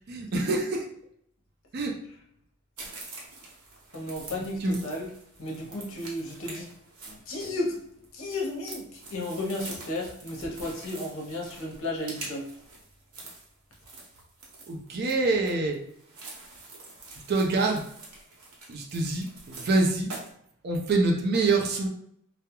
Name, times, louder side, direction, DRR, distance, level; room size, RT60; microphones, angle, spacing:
voice 1, 0.1-0.9 1.7-2.0 4.3-4.8 14.7-15.8 17.3-17.8 18.7-20.1 20.6-21.9, right 3 dB, 45° right, 1 dB, 0.4 m, -26 dB
sound 1, 2.8-20.3, right 3 dB, 85° right, 0.7 m, -45 dB
voice 2, 3.9-5.1 5.4-6.7 7.1-7.9 8.1-12.5, left 1 dB, 65° left, -1 dB, 0.7 m, -33 dB
2.3 x 2.0 x 2.9 m, 0.70 s
head